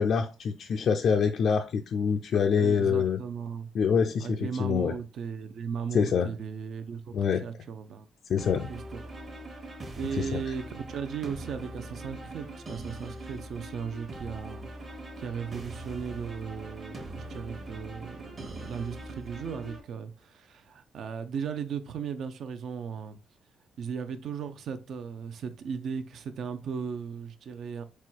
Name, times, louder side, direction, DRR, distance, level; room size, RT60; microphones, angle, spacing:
voice 1, 0.0-3.2 3.7-4.9 5.9-6.3 7.1-7.4 8.3-8.7 10.1-10.5, left 6 dB, 65° left, 0.4 m, -26 dB
voice 2, 2.6-3.7 4.2-8.1 8.7-9.1 10.0-14.7 15.2-23.2 23.8-27.8, right 6 dB, 65° right, 0.5 m, -36 dB
sound 1, 8.4-19.8, right 1 dB, 40° right, 1.0 m, -42 dB
4.2 x 2.3 x 4.4 m
cardioid pair, 90°, 0 cm